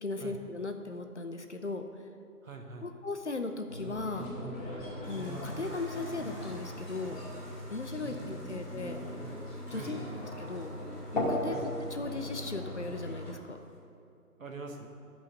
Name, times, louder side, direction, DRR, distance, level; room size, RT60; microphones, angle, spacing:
voice 1, 0.0-1.8 2.8-4.3 5.1-7.2 7.7-9.0 9.7-10.7 11.1-13.6, left 3 dB, 50° left, 6 dB, 0.7 m, -37 dB
voice 2, 2.4-2.9 8.0-8.8 9.7-10.1 11.5-11.7 14.4-14.9, right 3 dB, 60° right, 3 dB, 1.4 m, -44 dB
sound 1, 3.7-13.3, left 1 dB, 30° left, 2.6 m, -38 dB
sound 2, 5.0-13.8, right 1 dB, 5° left, 1.4 m, -55 dB
11.0 x 5.6 x 6.6 m, 2.6 s
figure-of-eight pair, 165°, 46 cm